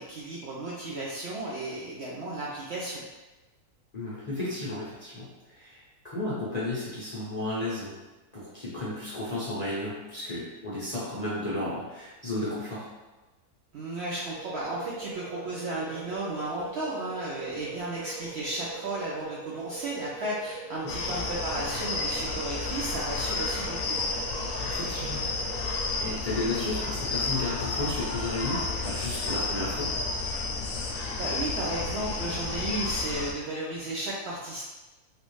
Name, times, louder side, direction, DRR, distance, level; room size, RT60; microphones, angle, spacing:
voice 1, 0.0-3.0 13.7-24.0 31.2-34.6, right 2 dB, 65° right, -5 dB, 0.6 m, -34 dB
voice 2, 3.9-7.9 8.3-12.9 20.8-20.9 24.6-25.2 26.0-29.9, left 2 dB, 40° left, -9 dB, 0.6 m, -33 dB
sound 1, 14.3-26.0, right 5 dB, 85° right, 1.2 m, -42 dB
sound 2, 20.9-33.3, left 3 dB, 70° left, 0.9 m, -31 dB
3.3 x 2.6 x 3.1 m, 1.1 s
omnidirectional pair, 1.6 m